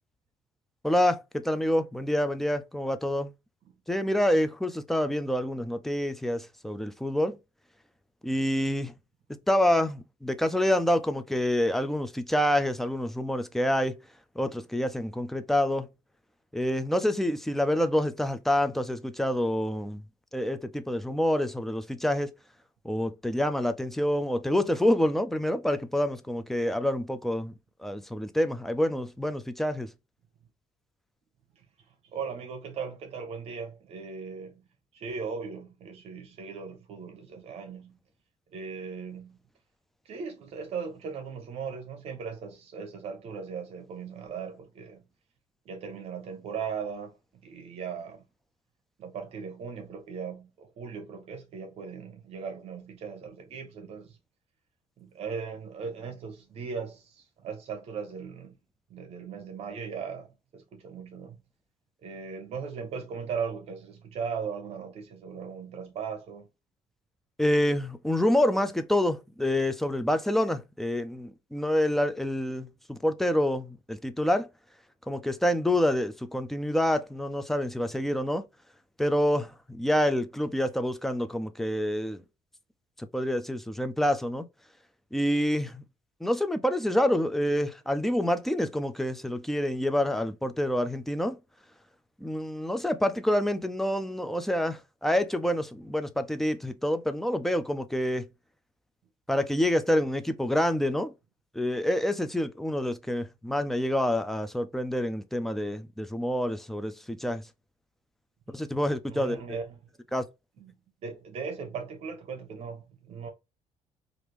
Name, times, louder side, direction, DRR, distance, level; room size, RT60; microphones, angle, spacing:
voice 1, 0.8-3.3 3.9-7.4 8.2-8.9 9.5-13.9 14.4-15.9 16.5-20.0 20.3-22.3 22.8-27.5 27.8-29.9 67.4-74.5 75.1-78.5 79.0-82.2 83.1-84.5 85.1-85.8 86.2-91.4 92.2-98.3 99.3-101.1 101.5-107.4 108.5-109.6 110.1-110.2, left 1 dB, ahead, 0.3 m, -27 dB
voice 2, 32.0-34.6 34.9-38.0 38.5-39.4 40.0-45.0 45.6-47.2 47.4-48.2 49.0-54.2 55.0-58.5 58.9-61.4 62.0-66.5 109.1-109.8 110.6-110.7 111.0-113.3, right 6 dB, 55° right, 0.9 m, -38 dB
3.3 x 2.5 x 3.0 m
cardioid pair, 160°, 13 cm